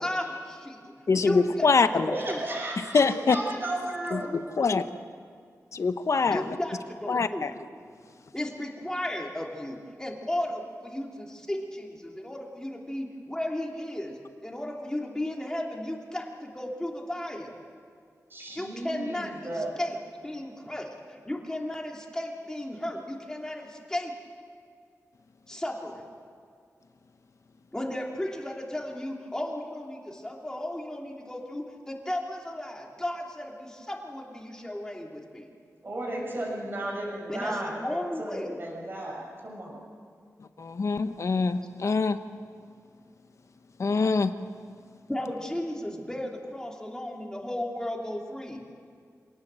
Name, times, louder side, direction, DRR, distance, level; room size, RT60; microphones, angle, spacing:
voice 1, 0.0-0.9 1.2-1.7 2.0-2.4 6.3-7.5 8.3-17.6 18.5-24.1 25.5-26.1 27.7-35.5 37.3-38.5 45.1-48.6, left 1 dB, 10° left, -1 dB, 3.1 m, -35 dB
voice 2, 1.1-2.2 2.9-3.4 4.1-4.8 5.7-6.6 7.1-7.5 40.6-42.2 43.8-44.3, left 4 dB, 60° left, 10 dB, 1.0 m, -24 dB
voice 3, 2.1-4.4 18.3-19.8 35.8-39.8, right 1 dB, 40° right, -2 dB, 6.7 m, -34 dB
26.0 x 18.0 x 7.7 m, 2.1 s
wide cardioid pair, 135°, 6 cm